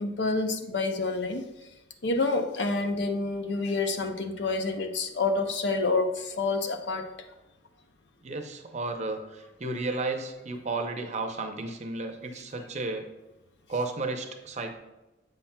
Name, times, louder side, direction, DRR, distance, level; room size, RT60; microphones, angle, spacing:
voice 1, 0.0-1.5 2.0-7.1, left 3 dB, 70° left, 6 dB, 0.6 m, -28 dB
voice 2, 8.2-13.1 13.7-14.8, right 3 dB, 40° right, 4 dB, 0.6 m, -33 dB
7.9 x 5.7 x 2.2 m, 1.0 s
head